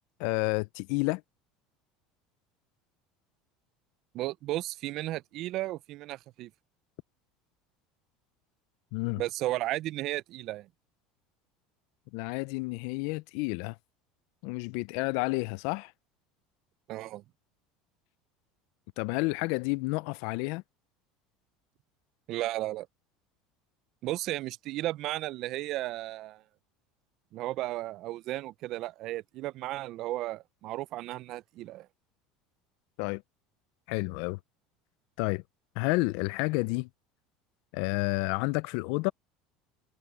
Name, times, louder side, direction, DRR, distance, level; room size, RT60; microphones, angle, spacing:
voice 1, 0.2-1.2 8.9-9.2 12.1-13.7 14.4-15.9 19.0-20.6 33.0-33.2 33.9-34.4 35.2-35.4 35.8-36.9 37.7-39.1, left 26 dB, 65° left, 0.4 m, -30 dB
voice 2, 4.1-6.5 9.2-10.7 16.9-17.2 22.3-22.9 24.0-26.4 27.3-31.9, right 16 dB, 45° right, 0.3 m, -34 dB
cardioid pair, 155°, 0 cm